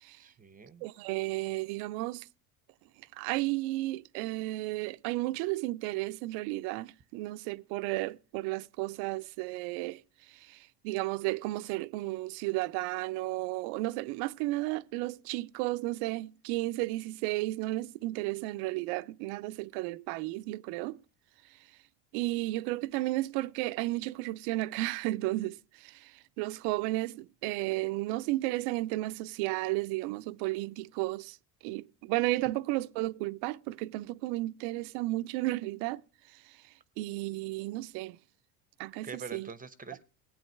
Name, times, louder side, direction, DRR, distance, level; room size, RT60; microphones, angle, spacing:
voice 1, 0.2-0.9 39.0-40.0, right 5 dB, 20° right, 0.8 m, -44 dB
voice 2, 0.8-2.3 3.1-10.0 10.3-21.0 22.1-31.4 31.6-36.0 36.3-36.6 37.0-38.2 38.8-39.5, right 19 dB, 75° right, 0.6 m, -33 dB
17.5 x 8.9 x 4.5 m
supercardioid pair, 110°, 39 cm